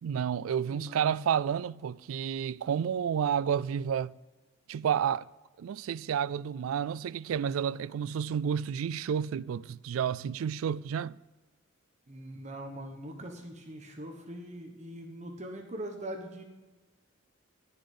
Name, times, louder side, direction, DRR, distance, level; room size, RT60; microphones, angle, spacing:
voice 1, 0.0-4.1 4.7-5.3 5.6-11.1, right 8 dB, 85° right, 0.3 m, -30 dB
voice 2, 0.7-1.2 12.1-16.4, right 1 dB, 35° right, 1.2 m, -42 dB
11.0 x 7.0 x 5.4 m
head